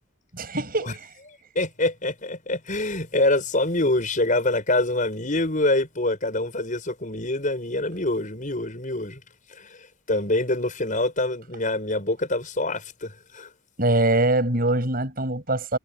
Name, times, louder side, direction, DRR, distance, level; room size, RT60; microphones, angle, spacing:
voice 1, 0.3-1.0 13.8-15.8, right 2 dB, 45° right, 6.8 m, -23 dB
voice 2, 1.5-9.2 9.5-13.5, left 2 dB, 40° left, 6.3 m, -25 dB
head